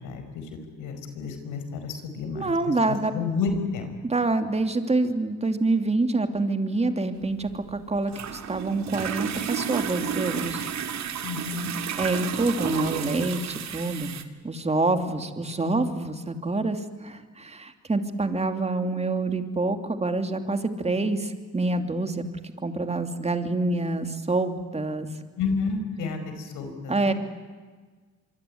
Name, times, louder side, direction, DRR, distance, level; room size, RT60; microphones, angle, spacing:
voice 1, 0.0-2.5 3.1-3.9 11.2-11.7 25.4-27.1, left 4 dB, 90° left, 7 dB, 5.1 m, -31 dB
voice 2, 2.3-3.1 4.0-10.6 12.0-22.2 22.6-25.1 26.9-27.1, right 2 dB, 20° right, 7 dB, 2.9 m, -26 dB
sound 1, 7.2-14.2, right 8 dB, 65° right, 2.2 m, -32 dB
25.5 x 24.0 x 9.7 m, 1.4 s
cardioid pair, 90°, 30 cm